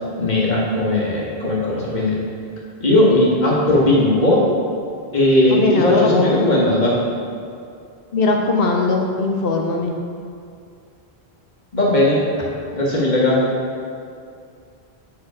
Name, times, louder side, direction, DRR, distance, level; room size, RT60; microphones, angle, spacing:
voice 1, 0.2-2.2 2.8-4.4 5.1-6.9 11.7-12.2 12.7-13.4, left 1 dB, 45° left, -5 dB, 1.4 m, -17 dB
voice 2, 5.5-6.2 6.5-6.7 8.1-9.9, left 3 dB, 70° left, 1 dB, 0.8 m, -19 dB
5.8 x 4.8 x 4.7 m, 2.4 s
omnidirectional pair, 1.0 m